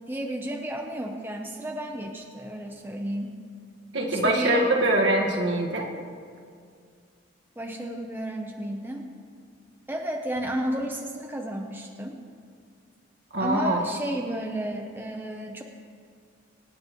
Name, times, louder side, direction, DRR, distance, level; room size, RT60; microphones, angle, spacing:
voice 1, 0.1-3.4 4.1-4.9 7.6-9.1 9.9-12.2 13.4-15.6, right 1 dB, 10° right, 2 dB, 0.7 m, -32 dB
voice 2, 3.9-5.9 13.3-13.8, right 1 dB, 70° right, -1 dB, 1.6 m, -23 dB
25.0 x 9.2 x 3.0 m, 2.2 s
head